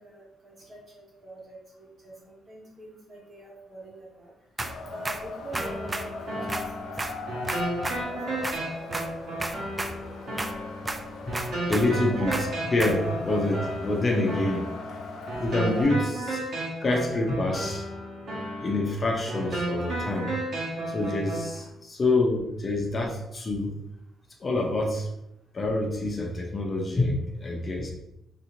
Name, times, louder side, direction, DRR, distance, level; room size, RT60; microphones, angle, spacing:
voice 1, 0.0-4.3 4.9-7.4 7.8-8.4 12.1-12.4, right 2 dB, 45° right, -4 dB, 1.3 m, -45 dB
Wind, 4.6-15.8, left 3 dB, 80° left, 0.5 m, -39 dB
sound 1, 4.6-5.3 5.5-6.1 6.5-8.1 8.4-8.6 8.9-9.1 9.4-10.0 10.4-10.6 10.9-12.0 12.3-13.0, right 2 dB, 20° right, 0.3 m, -33 dB
sound 2, 5.5-21.5, right 1 dB, 60° right, 1.2 m, -34 dB
voice 2, 11.7-12.3 12.7-14.7 15.4-16.4 16.8-17.9 18.6-20.3 20.9-23.8 24.4-25.1 25.5-27.9, left 2 dB, 35° left, 0 dB, 0.6 m, -26 dB
3.3 x 2.9 x 2.6 m, 0.85 s
cardioid pair, 90°, 0 cm